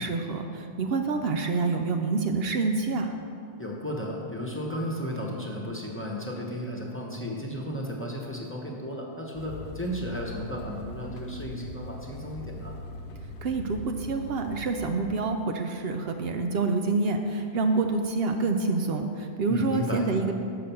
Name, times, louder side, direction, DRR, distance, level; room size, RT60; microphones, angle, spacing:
voice 1, 0.0-3.1 13.4-20.3, right 3 dB, 65° right, 5 dB, 0.8 m, -27 dB
voice 2, 3.6-12.8 19.5-20.1, equal, 10° left, -2 dB, 0.8 m, -34 dB
sound 1, 9.3-14.7, left 2 dB, 70° left, 0.9 m, -40 dB
6.5 x 5.8 x 6.9 m, 2.4 s
omnidirectional pair, 1.1 m